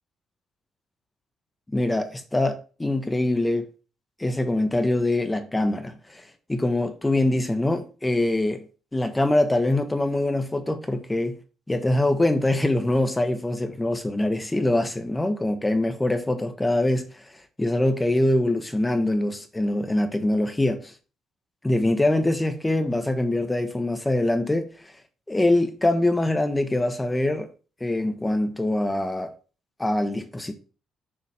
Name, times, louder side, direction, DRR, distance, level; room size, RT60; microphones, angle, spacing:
voice 1, 1.7-3.7 4.2-8.7 8.9-11.4 11.7-17.3 17.6-20.9 21.6-24.7 25.3-27.5 27.8-29.3 29.8-30.5, left 1 dB, 15° left, 0.9 m, -24 dB
6.6 x 3.0 x 5.6 m
cardioid pair, 90°, 0 cm